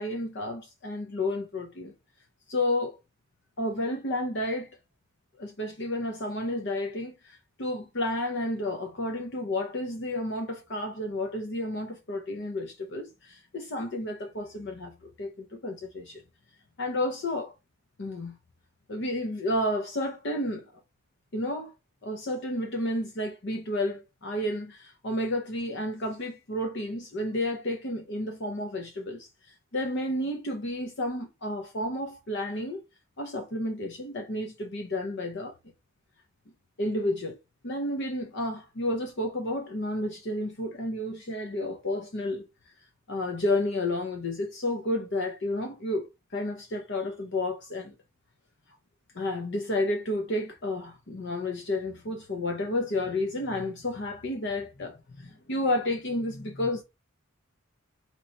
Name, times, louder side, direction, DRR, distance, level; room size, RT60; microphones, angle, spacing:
voice 1, 0.0-1.9 2.5-3.0 3.6-4.7 5.4-16.2 16.8-17.5 18.0-18.3 18.9-20.6 21.3-21.7 22.0-32.8 33.2-35.5 36.8-37.4 37.6-42.5 43.1-47.9 49.1-56.8, left 1 dB, 55° left, 0.7 m, -31 dB
4.4 x 3.0 x 3.9 m
head